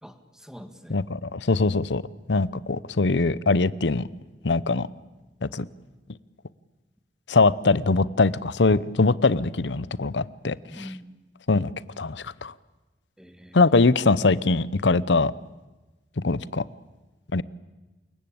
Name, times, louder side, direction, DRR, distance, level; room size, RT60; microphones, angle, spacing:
voice 1, 0.0-1.0 10.7-11.1 13.2-13.6, equal, 5° right, 1.8 m, -44 dB
voice 2, 0.9-2.0 2.3-4.1 4.4-4.9 5.4-5.7 7.3-10.9 11.5-12.5 13.5-15.3 16.2-16.6 17.3-17.4, left 3 dB, 90° left, 0.8 m, -22 dB
28.0 x 22.0 x 8.7 m
head